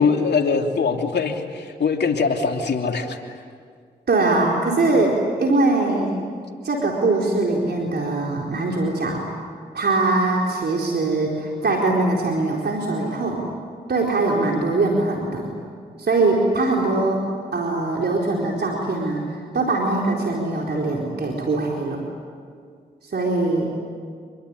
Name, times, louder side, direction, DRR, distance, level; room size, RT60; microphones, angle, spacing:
voice 1, 0.0-3.2, left 5 dB, 65° left, 3 dB, 3.1 m, -22 dB
voice 2, 4.1-6.1 6.6-9.2 9.7-13.4 13.9-15.5 16.0-17.2 17.5-22.0 23.0-23.7, right 2 dB, 60° right, -1 dB, 4.4 m, -22 dB
27.0 x 22.5 x 9.9 m, 2.1 s
supercardioid pair, 40°, 19 cm